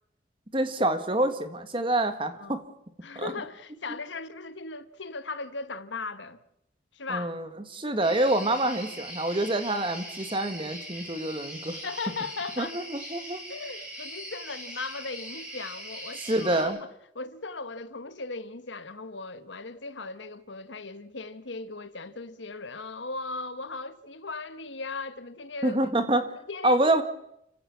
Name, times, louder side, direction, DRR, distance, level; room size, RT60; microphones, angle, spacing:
voice 1, 0.5-2.6 3.2-3.3 7.1-11.8 12.6-13.4 16.2-16.8 25.6-26.3 26.6-27.0, right 1 dB, 30° right, 1.8 m, -26 dB
voice 2, 3.0-6.4 6.9-7.4 11.8-12.8 13.5-25.9 26.5-27.0, left 3 dB, 80° left, 1.2 m, -38 dB
sound 1, 8.0-16.6, equal, 5° right, 7.9 m, -41 dB
29.5 x 15.5 x 7.2 m
head